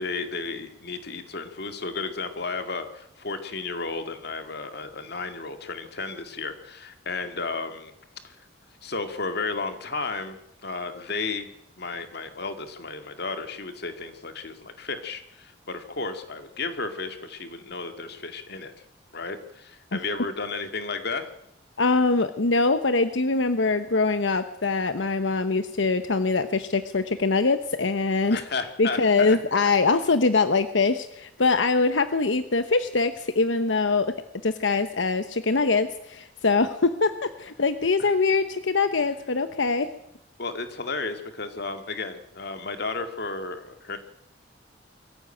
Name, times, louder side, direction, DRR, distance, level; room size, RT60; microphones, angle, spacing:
voice 1, 0.0-7.9 8.2-8.4 8.8-11.5 11.8-18.7 19.1-21.3 28.3-29.4 38.0-38.1 40.4-44.0, left 3 dB, 60° left, 7 dB, 2.2 m, -33 dB
voice 2, 21.8-28.4 28.8-34.1 34.4-39.9, left 3 dB, 85° left, 10 dB, 1.0 m, -23 dB
22.5 x 15.0 x 9.0 m, 0.80 s
head